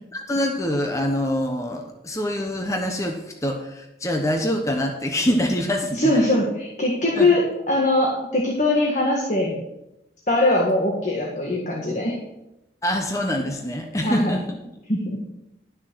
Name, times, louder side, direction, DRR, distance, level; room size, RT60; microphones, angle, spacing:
voice 1, 0.1-6.1 7.2-7.3 12.8-14.4, left 1 dB, 15° left, 3 dB, 1.0 m, -25 dB
voice 2, 5.9-9.6 10.3-12.2 13.9-14.4 14.9-15.2, left 1 dB, 40° left, -1 dB, 1.7 m, -21 dB
12.0 x 6.4 x 6.2 m, 0.90 s
head